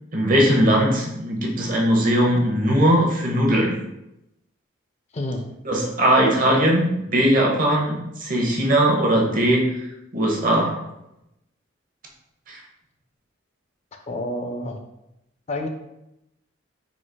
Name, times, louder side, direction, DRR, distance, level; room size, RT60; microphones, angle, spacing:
voice 1, 0.1-3.7 5.6-9.6 10.1-10.8 12.5-12.6, right 1 dB, 45° right, -1 dB, 0.8 m, -19 dB
voice 2, 14.1-14.8 15.5-15.7, left 1 dB, 35° left, 4 dB, 0.4 m, -28 dB
4.7 x 4.0 x 2.2 m, 0.87 s
head